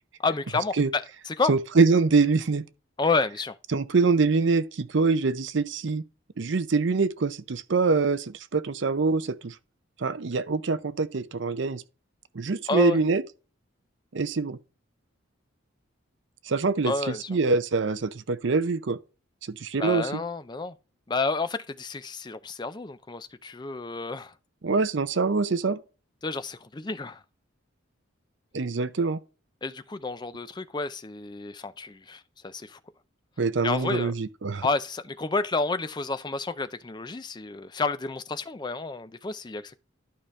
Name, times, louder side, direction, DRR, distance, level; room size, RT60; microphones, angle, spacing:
voice 1, 0.2-1.5 3.0-3.6 12.7-13.0 16.8-17.3 19.8-20.7 21.1-24.3 26.2-27.2 29.6-32.8 33.6-34.1 34.6-39.8, left 3 dB, 20° left, 0.4 m, -30 dB
voice 2, 1.5-2.6 3.7-6.0 6.4-9.5 10.0-11.8 12.3-13.2 14.1-14.6 16.5-19.0 19.5-20.2 24.6-25.8 28.5-29.2 33.4-34.7, right 4 dB, 60° right, 0.6 m, -24 dB
11.5 x 5.0 x 3.2 m
head